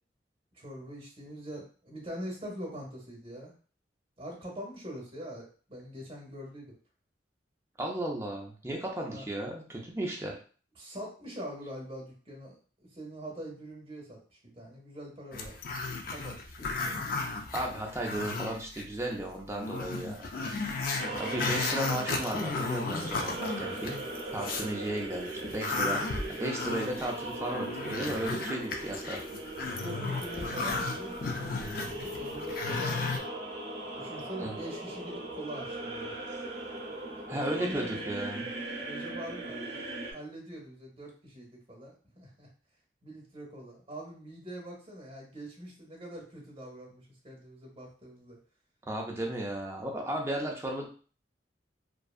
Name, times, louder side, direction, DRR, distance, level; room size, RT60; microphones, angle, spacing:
voice 1, 0.5-3.5 4.2-6.7 9.0-9.2 10.8-17.0 20.9-21.3 29.6-33.2 34.0-36.1 37.3-38.0 38.7-42.5 43.0-48.4, equal, 30° right, -2 dB, 0.8 m, -44 dB
voice 2, 7.8-10.3 17.5-20.3 20.7-20.9 21.2-24.1 24.3-29.2 34.4-34.5 37.3-38.5 48.9-50.9, right 1 dB, 15° right, 0 dB, 0.5 m, -35 dB
Growling, 15.3-18.8 19.2-19.3 19.6-24.7 25.1-33.2, left 3 dB, 50° left, 0.4 m, -34 dB
sound 1, 21.0-40.1, right 2 dB, 70° right, 0.6 m, -39 dB
2.6 x 2.3 x 2.3 m, 0.40 s
head